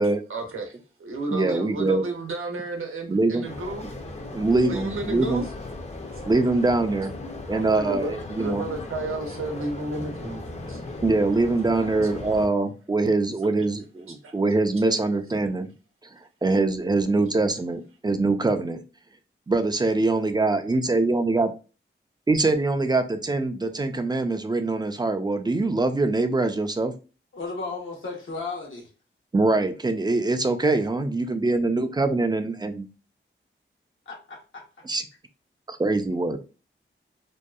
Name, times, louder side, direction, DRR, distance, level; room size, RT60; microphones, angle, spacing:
voice 1, 0.3-3.8 4.7-5.5 7.5-10.8 11.7-11.9 12.1-12.2 14.1-14.3, right 2 dB, 85° right, 0.7 m, -32 dB
voice 2, 1.3-2.0 3.1-3.5 4.3-5.5 6.2-7.1 7.5-8.6 11.0-15.7 16.4-18.8 19.5-21.5 22.3-26.9 29.3-32.9 34.8-35.0 35.7-36.4, right 2 dB, 20° right, 0.3 m, -23 dB
sound 1, 3.4-12.5, left 2 dB, 35° left, 0.5 m, -37 dB
voice 3, 27.3-28.9 34.1-34.8, left 3 dB, 75° left, 0.9 m, -35 dB
2.7 x 2.2 x 2.3 m
wide cardioid pair, 70°, 21 cm